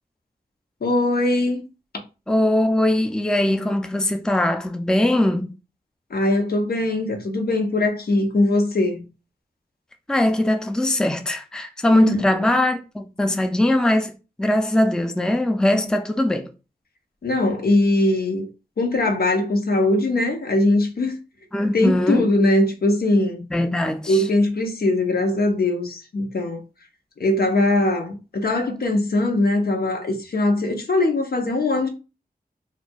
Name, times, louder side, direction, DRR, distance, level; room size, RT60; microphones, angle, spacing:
voice 1, 0.8-1.6 6.1-9.1 11.9-12.5 17.2-18.5 18.8-21.2 21.7-23.4 24.1-26.6 27.2-31.9, left 2 dB, 75° left, 0.8 m, -21 dB
voice 2, 2.3-5.5 10.1-16.5 21.5-22.3 23.5-24.2, left 1 dB, 5° left, 0.4 m, -21 dB
4.4 x 2.5 x 2.3 m
wide cardioid pair, 95°, 16 cm